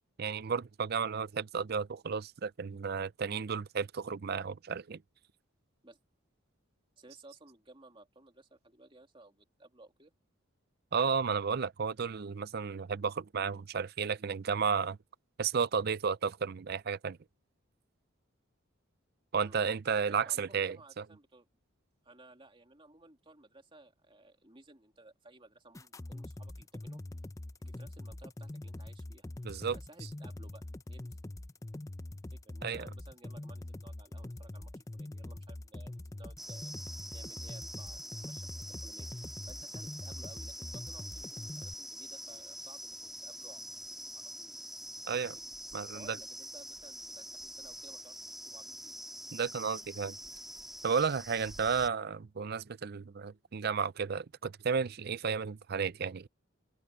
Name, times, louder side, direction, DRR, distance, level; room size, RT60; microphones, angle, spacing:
voice 1, 0.2-5.0 10.9-15.0 15.4-17.2 19.3-20.8 29.4-29.8 32.6-32.9 45.1-45.3 45.7-46.2 49.3-50.2 50.8-56.3, right 6 dB, 45° right, 0.5 m, -33 dB
voice 2, 7.0-10.1 19.4-19.6 20.1-21.5 22.0-27.0 27.6-29.3 29.7-31.2 32.3-39.1 39.5-43.6 44.1-44.6 45.9-49.0 52.3-52.5, right 2 dB, 25° right, 2.8 m, -57 dB
sound 1, 25.7-41.7, left 1 dB, 15° left, 0.5 m, -44 dB
sound 2, 36.4-51.9, right 1 dB, ahead, 2.2 m, -45 dB
open air
head